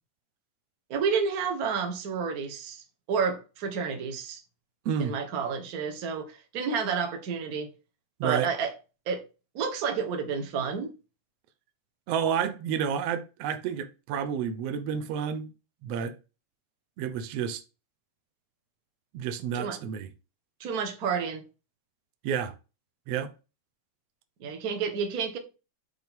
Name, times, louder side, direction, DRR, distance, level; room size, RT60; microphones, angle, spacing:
voice 1, 0.9-4.4 5.0-7.7 8.2-8.7 9.1-9.2 9.5-10.9 19.5-19.8 20.6-21.4 24.4-25.4, right 6 dB, 50° right, 1.0 m, -30 dB
voice 2, 12.1-15.5 15.8-16.1 17.0-17.6 19.1-20.1 22.2-22.5 23.1-23.3, right 8 dB, 70° right, 1.7 m, -30 dB
6.2 x 4.3 x 5.3 m
omnidirectional pair, 3.4 m